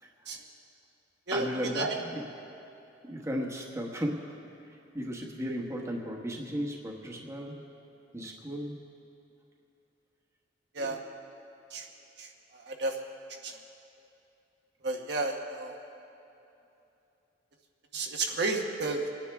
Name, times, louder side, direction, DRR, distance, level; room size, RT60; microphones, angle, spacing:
voice 1, 1.3-2.2 3.1-4.4 4.9-7.6 8.1-8.8, equal, 15° right, 0 dB, 1.2 m, -35 dB
voice 2, 14.8-15.7 17.9-19.1, right 3 dB, 60° right, 1 dB, 1.1 m, -31 dB
25.5 x 10.0 x 3.5 m, 2.8 s
head